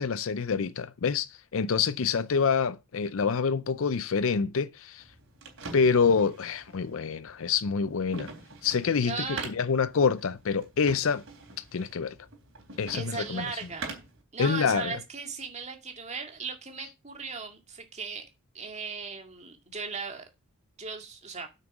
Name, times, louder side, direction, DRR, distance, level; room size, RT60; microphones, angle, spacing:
voice 1, 0.0-5.0 5.7-8.3 8.6-11.2 11.7-12.1 12.8-13.5 14.4-14.9, left 5 dB, 65° left, 0.5 m, -26 dB
sound 1, 5.0-14.2, right 3 dB, 60° right, 3.7 m, -45 dB
voice 2, 9.0-9.5 12.9-14.0 14.3-18.2 18.5-20.3 20.8-21.5, right 5 dB, 30° right, 2.1 m, -37 dB
8.8 x 6.7 x 6.0 m
head